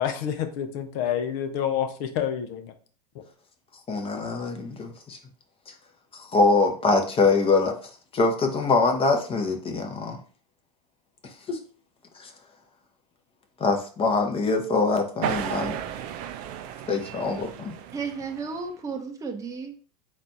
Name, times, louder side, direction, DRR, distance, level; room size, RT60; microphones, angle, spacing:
voice 1, 0.0-2.7 3.1-3.2, left 9 dB, 55° left, 8 dB, 0.8 m, -28 dB
voice 2, 3.9-5.2 5.7-5.8 6.1-7.7 8.1-10.2 11.5-11.6 12.1-12.3 13.6-15.8 16.9-17.7, left 3 dB, 25° left, 4 dB, 0.9 m, -24 dB
sound 1, 15.2-18.7, right 9 dB, 50° right, 0.6 m, -34 dB
voice 3, 17.9-19.9, right 5 dB, 15° right, 2 dB, 0.7 m, -33 dB
4.2 x 2.6 x 4.4 m, 0.40 s
hypercardioid pair, 90°, 20 cm